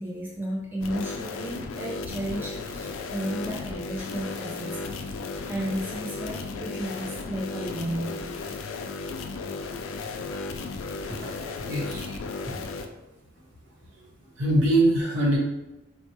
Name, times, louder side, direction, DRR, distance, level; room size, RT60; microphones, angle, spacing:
voice 1, 0.0-8.3, right 1 dB, 10° right, -4 dB, 0.4 m, -33 dB
sound 1, 0.8-12.9, left 4 dB, 90° left, 0.4 m, -35 dB
voice 2, 11.1-13.0 14.4-15.4, right 1 dB, 65° right, -4 dB, 1.1 m, -25 dB
4.1 x 2.2 x 3.0 m, 0.95 s
head